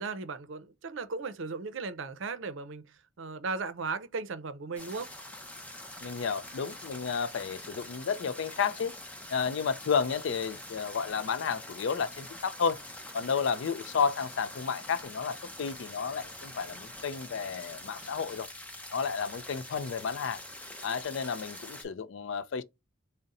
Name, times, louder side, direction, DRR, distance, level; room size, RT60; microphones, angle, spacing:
voice 1, 0.0-5.1, right 4 dB, 70° right, 0.5 m, -36 dB
sound 1, 4.8-21.8, left 1 dB, 5° left, 0.5 m, -45 dB
voice 2, 6.0-8.9 9.3-12.8 13.1-18.5 18.9-20.4 20.8-22.6, left 6 dB, 70° left, 0.4 m, -32 dB
4.0 x 2.1 x 3.6 m
head